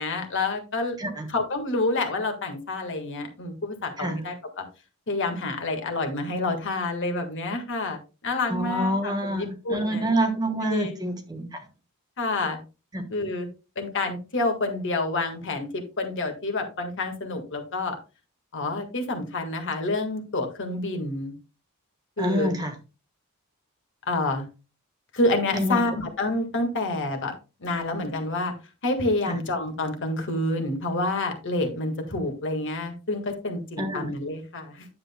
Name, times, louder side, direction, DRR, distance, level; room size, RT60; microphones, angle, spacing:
voice 1, 0.0-1.0 1.3-4.6 5.1-10.0 10.7-10.9 12.2-12.6 13.1-13.5 13.7-18.0 18.5-21.3 22.2-22.6 24.1-24.5 25.1-27.3 27.6-28.5 28.8-34.9, left 2 dB, 55° left, 1.6 m, -28 dB
voice 2, 8.5-11.7 12.9-13.0 22.2-22.7 25.5-26.0 29.3-29.4 33.8-34.1, right 1 dB, 20° right, 1.2 m, -27 dB
9.8 x 7.7 x 2.2 m
head